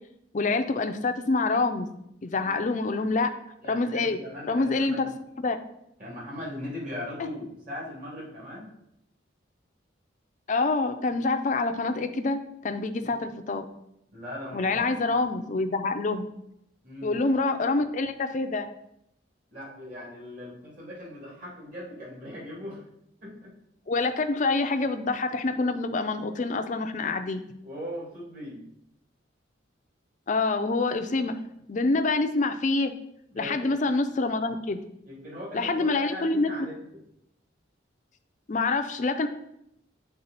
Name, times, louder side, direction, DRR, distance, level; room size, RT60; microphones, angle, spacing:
voice 1, 0.3-1.9 2.2-3.3 3.7-4.2 4.5-5.1 5.4-5.6 10.5-13.6 14.5-16.3 17.0-18.7 23.9-27.4 30.3-31.4 31.7-32.9 33.4-34.8 35.5-36.5 38.5-39.3, left 3 dB, 40° left, 7 dB, 0.4 m, -26 dB
voice 2, 3.6-5.1 6.0-8.7 13.0-13.2 14.1-14.9 16.8-17.2 19.5-22.8 23.2-23.5 27.6-28.7 33.3-33.8 35.1-37.0, left 1 dB, 40° right, -5 dB, 2.5 m, -39 dB
7.9 x 3.7 x 4.1 m, 0.78 s
head